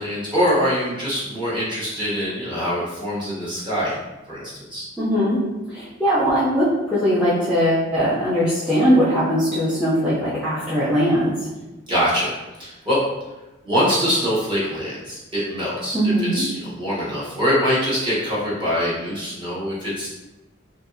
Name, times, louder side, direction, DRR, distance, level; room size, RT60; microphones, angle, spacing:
voice 1, 0.0-4.0 4.3-4.8 11.9-12.3 12.6-13.0 13.6-16.0 16.3-20.1, equal, 25° right, -8 dB, 0.9 m, -23 dB
voice 2, 5.0-5.4 5.7-11.5 15.9-16.4, equal, 5° right, -11 dB, 0.4 m, -20 dB
2.7 x 2.5 x 2.6 m, 1.0 s
head